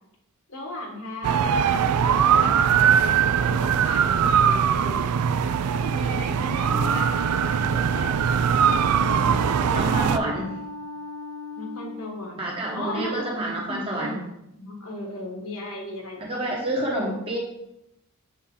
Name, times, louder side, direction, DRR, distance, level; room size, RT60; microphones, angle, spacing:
voice 1, 0.5-5.1 5.8-10.0 11.6-13.3 13.7-14.2 14.6-16.4, left 1 dB, 65° left, 0 dB, 1.5 m, -36 dB
sound 1, 1.2-10.2, right 7 dB, 85° right, 0.4 m, -21 dB
Wind instrument woodwind instrument, 6.6-12.0, left 1 dB, 5° left, 1.0 m, -36 dB
voice 2, 9.7-10.6 12.4-14.2 16.2-17.4, right 1 dB, 25° right, -3 dB, 1.1 m, -28 dB
7.5 x 4.0 x 3.8 m, 0.84 s
head